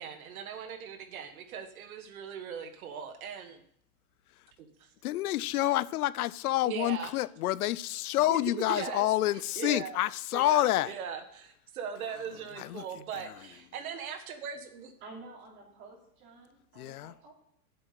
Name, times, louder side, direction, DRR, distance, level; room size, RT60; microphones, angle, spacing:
voice 1, 0.0-3.6 4.8-4.9 5.4-5.7 6.6-7.2 8.3-9.1 9.5-10.0 10.3-14.9, right 7 dB, 70° right, 1.6 m, -39 dB
voice 2, 5.0-10.9 12.6-12.8 16.8-17.1, left 15 dB, 75° left, 0.6 m, -28 dB
voice 3, 15.0-17.3, right 3 dB, 25° right, 3.2 m, -50 dB
7.8 x 7.5 x 8.1 m
supercardioid pair, 165°, 44 cm